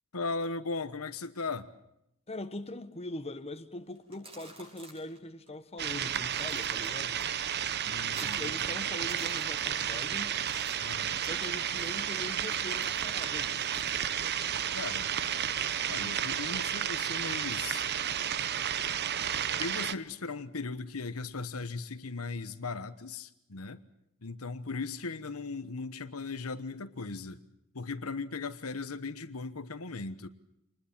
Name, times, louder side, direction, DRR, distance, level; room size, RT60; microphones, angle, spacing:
voice 1, 0.1-1.7 7.8-8.9 10.8-11.2 14.7-15.1 15.9-17.9 19.6-23.8 24.2-27.4 27.7-30.3, left 3 dB, 80° left, 1.2 m, -38 dB
voice 2, 2.3-7.2 8.2-10.4 11.2-13.6, left 2 dB, 30° left, 1.3 m, -42 dB
sound 1, 4.0-5.2 5.5-5.6 5.9-7.2 7.6-8.6 8.9-10.0 10.3-14.1, right 2 dB, 25° right, 6.3 m, -51 dB
sound 2, 5.8-19.9, right 9 dB, 50° right, 0.8 m, -32 dB
26.0 x 20.5 x 7.3 m
head